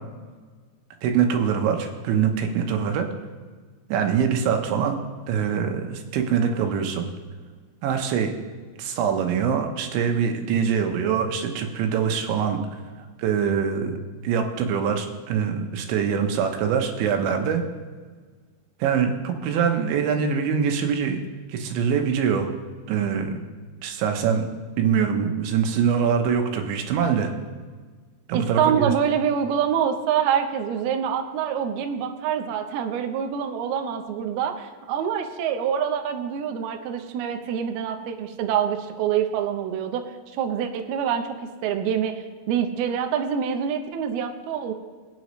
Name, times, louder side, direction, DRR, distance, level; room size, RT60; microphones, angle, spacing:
voice 1, 1.0-3.1 3.9-4.9 5.3-7.1 7.8-8.3 8.8-12.6 13.2-14.0 14.2-17.6 18.8-21.2 21.5-22.5 22.9-23.4 23.8-24.4 24.8-27.3 28.3-28.9, right 7 dB, 75° right, 4 dB, 3.1 m, -23 dB
voice 2, 28.3-40.0 40.4-42.1 42.5-44.7, right 8 dB, 90° right, 5 dB, 2.2 m, -25 dB
22.5 x 9.1 x 3.2 m, 1.5 s
omnidirectional pair, 5.8 m